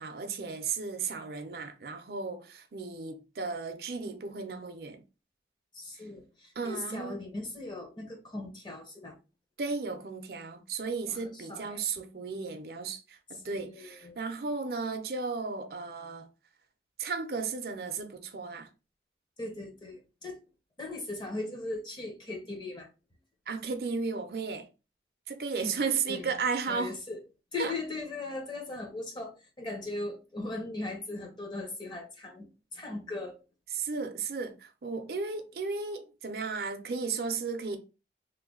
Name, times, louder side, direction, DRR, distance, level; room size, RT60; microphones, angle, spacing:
voice 1, 0.0-5.0 5.9-6.1 6.6-7.2 9.6-16.3 17.0-18.7 23.5-24.7 25.3-26.9 27.6-27.7 33.7-37.8, right 4 dB, 60° right, 0.5 m, -34 dB
voice 2, 5.7-9.2 11.1-11.8 13.4-14.2 19.4-20.4 20.8-22.9 25.6-25.8 26.1-26.3 26.7-27.2 27.5-33.4, left 2 dB, 25° left, 0.8 m, -39 dB
3.1 x 2.2 x 3.7 m
head